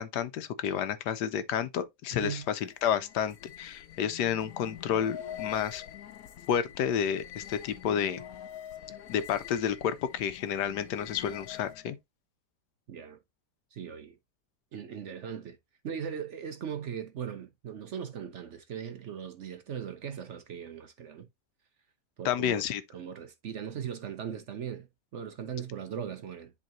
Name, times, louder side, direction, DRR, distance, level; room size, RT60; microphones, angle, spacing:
voice 1, 0.0-5.8 6.5-8.2 9.1-12.0 22.2-22.8, left 9 dB, 85° left, 1.3 m, -30 dB
voice 2, 2.1-2.4 12.9-13.2 13.7-14.1 14.7-15.6 15.8-21.3 22.2-22.6 22.9-24.9 25.1-26.5, right 8 dB, 60° right, 0.8 m, -39 dB
sound 1, 2.2-11.9, left 10 dB, 65° left, 1.1 m, -45 dB
10.5 x 3.7 x 2.6 m
omnidirectional pair, 1.7 m